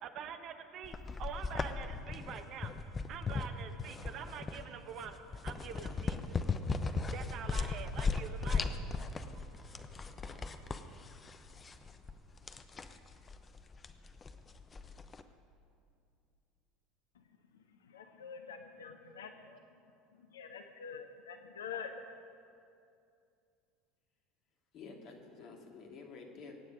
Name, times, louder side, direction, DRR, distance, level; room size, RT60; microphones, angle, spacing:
voice 1, 0.0-2.8 3.1-9.1 9.3-9.8 10.3-10.8, right 7 dB, 45° right, 8 dB, 1.1 m, -47 dB
sound 1, 0.8-15.2, left 4 dB, 25° left, 0.8 m, -38 dB
voice 2, 17.8-19.5 20.2-21.9, left 6 dB, 70° left, 7 dB, 0.8 m, -46 dB
voice 3, 19.0-19.6 24.7-26.5, left 4 dB, 45° left, 1 dB, 2.5 m, -51 dB
23.0 x 9.4 x 5.3 m, 2.5 s
figure-of-eight pair, 70°, 0 cm